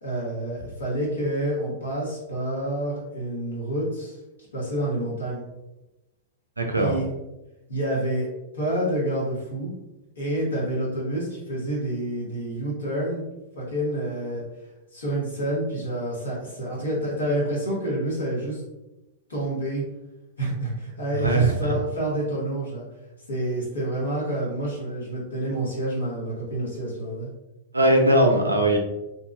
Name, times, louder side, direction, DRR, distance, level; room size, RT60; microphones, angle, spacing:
voice 1, 0.0-4.2 4.5-5.4 6.8-7.1 7.7-9.7 10.2-13.2 13.6-14.4 14.9-18.6 19.3-19.8 20.4-22.8 23.3-27.3, right 1 dB, 75° left, -4 dB, 1.0 m, -28 dB
voice 2, 6.6-7.0 21.1-21.5 27.7-28.8, right 1 dB, 85° right, 3 dB, 0.4 m, -19 dB
2.7 x 2.3 x 2.3 m, 0.99 s
figure-of-eight pair, 100°, 0 cm